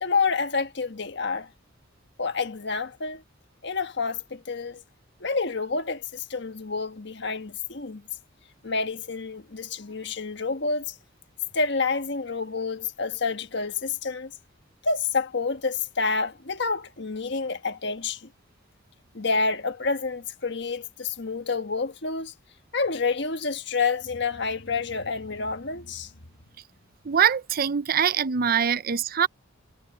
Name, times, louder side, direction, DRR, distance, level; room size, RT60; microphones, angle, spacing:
voice 1, 0.0-1.5 2.2-3.2 3.6-4.8 5.2-8.0 8.6-11.0 11.5-14.3 14.8-18.3 19.1-22.3 22.7-26.1, left 4 dB, 60° left, 1.4 m, -28 dB
voice 2, 27.1-29.3, right 8 dB, 50° right, 0.6 m, -23 dB
head